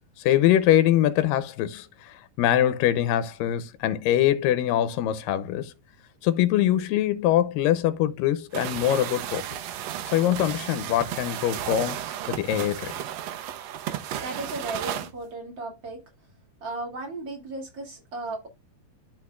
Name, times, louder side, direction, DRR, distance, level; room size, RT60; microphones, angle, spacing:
voice 1, 0.2-5.7 6.2-9.4 10.1-12.9, left 12 dB, 90° left, 2.4 m, -23 dB
sound 1, 8.5-15.1, right 11 dB, 85° right, 1.5 m, -33 dB
voice 2, 14.2-16.0 16.6-18.5, right 2 dB, 35° right, 2.7 m, -35 dB
13.0 x 4.3 x 2.4 m
omnidirectional pair, 3.9 m